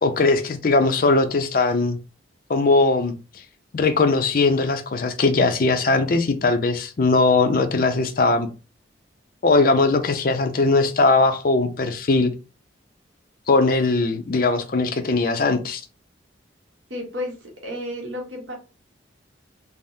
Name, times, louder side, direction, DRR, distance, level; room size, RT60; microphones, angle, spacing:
voice 1, 0.0-2.0 2.5-3.1 3.7-8.5 9.4-12.3 13.5-15.8, left 3 dB, 45° left, 7 dB, 0.4 m, -20 dB
voice 2, 16.9-18.5, left 1 dB, 80° right, 0 dB, 1.0 m, -32 dB
3.4 x 2.0 x 2.6 m, 0.32 s
head